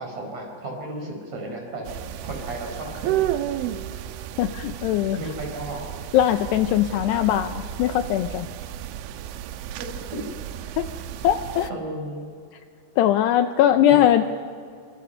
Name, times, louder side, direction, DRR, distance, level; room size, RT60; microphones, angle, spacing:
voice 1, 0.0-1.9 2.2-3.3 5.2-5.9 9.7-10.3 11.7-12.3 13.9-14.0, right 1 dB, 35° right, 2 dB, 5.6 m, -34 dB
sound 1, 1.8-11.7, right 12 dB, 90° right, 3.3 m, -32 dB
voice 2, 4.4-5.2 6.1-8.5 10.8-10.9 11.2-11.7 13.0-14.3, left 11 dB, 80° left, 8 dB, 2.6 m, -20 dB
29.0 x 25.5 x 5.7 m, 2.3 s
omnidirectional pair, 5.4 m